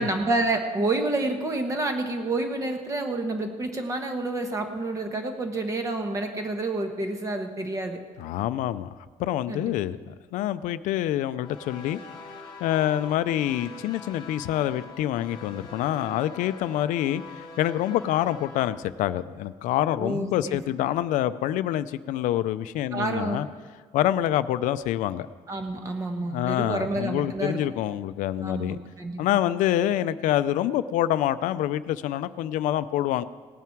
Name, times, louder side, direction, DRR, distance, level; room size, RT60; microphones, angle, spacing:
voice 1, 0.0-8.0 9.5-9.9 20.0-20.6 22.9-23.4 25.5-27.6 28.4-29.2, right 2 dB, 25° right, 5 dB, 1.1 m, -29 dB
voice 2, 8.2-12.0 12.6-23.5 23.9-25.3 26.2-28.8 29.2-33.2, left 12 dB, 90° left, 14 dB, 0.4 m, -26 dB
sound 1, 11.4-18.7, left 4 dB, 35° left, 1.5 m, -43 dB
18.0 x 9.3 x 4.6 m, 1.5 s
cardioid pair, 170°, 13 cm